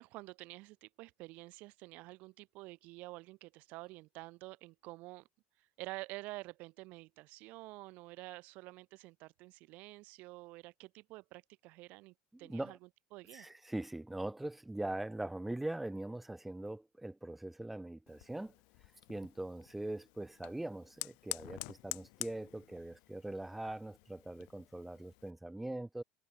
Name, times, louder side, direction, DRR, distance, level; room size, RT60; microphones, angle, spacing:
voice 1, 0.0-5.3 5.8-12.8 13.1-13.5, right 21 dB, 60° right, 1.9 m, -49 dB
voice 2, 12.3-12.8 13.3-18.5 19.1-26.0, right 1 dB, 5° right, 0.7 m, -42 dB
Fire, 18.1-25.3, left 40 dB or more, 70° left, 1.2 m, -48 dB
cardioid pair, 150°, 3 cm